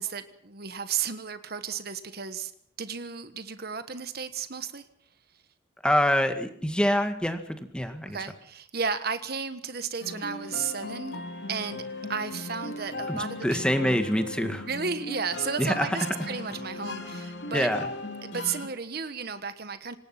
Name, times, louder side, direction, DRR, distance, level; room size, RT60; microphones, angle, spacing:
voice 1, 0.0-2.5 2.8-4.9 8.1-11.2 11.5-11.8 12.1-14.0 14.7-17.7 18.2-20.0, right 6 dB, 55° right, 11 dB, 1.3 m, -33 dB
voice 2, 5.8-8.2 13.1-14.7 15.6-15.9 17.5-17.8, equal, 5° left, 7 dB, 1.9 m, -25 dB
sound 1, 10.0-18.7, left 2 dB, 60° left, 2.7 m, -37 dB
26.0 x 19.0 x 5.9 m, 0.63 s
head